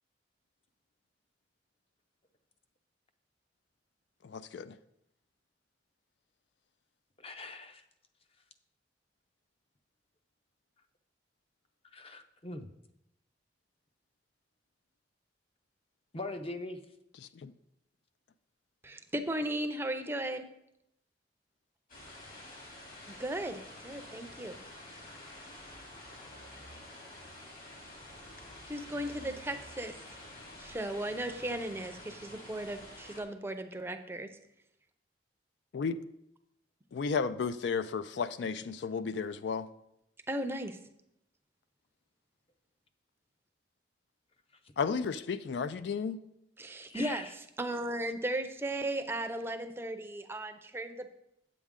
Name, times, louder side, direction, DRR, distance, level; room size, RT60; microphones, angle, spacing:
voice 1, 4.2-4.8 17.4-17.5 35.7-36.0 36.9-39.7 44.8-46.2, left 5 dB, 75° left, 13 dB, 0.4 m, -33 dB
voice 2, 7.2-7.8 11.9-12.7 16.1-16.8 44.6-44.7 46.9-47.3, left 2 dB, 30° left, 7 dB, 0.7 m, -41 dB
voice 3, 18.8-20.5 23.1-24.6 28.7-30.0 30.6-34.3 40.3-40.8 46.6-51.1, right 1 dB, 15° right, 7 dB, 0.5 m, -36 dB
sound 1, 21.9-33.2, left 1 dB, 50° left, 2.7 m, -49 dB
8.5 x 8.1 x 3.7 m, 0.81 s
head